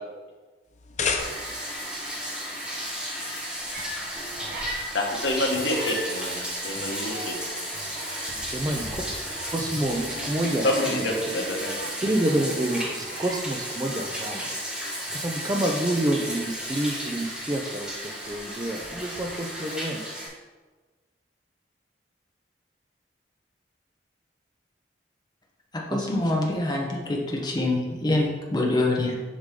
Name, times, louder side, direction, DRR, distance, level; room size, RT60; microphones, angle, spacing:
sound 1, 0.7-1.8, left 5 dB, 40° left, 0.6 m, -30 dB
Bathtub (filling or washing), 1.2-20.3, equal, 5° right, 1.2 m, -34 dB
sound 2, 3.7-5.2 5.5-14.8 15.1-15.5, right 1 dB, 50° right, 1.6 m, -40 dB
voice 1, 4.9-7.3 10.6-11.9, left 1 dB, 90° left, 0 dB, 1.3 m, -27 dB
voice 2, 8.5-9.1 9.5-11.1 12.0-20.0 25.9-26.3, right 1 dB, 20° right, 3 dB, 0.5 m, -28 dB
voice 3, 25.9-29.1, left 2 dB, 25° left, -2 dB, 1.1 m, -25 dB
7.3 x 5.1 x 3.7 m, 1.3 s
head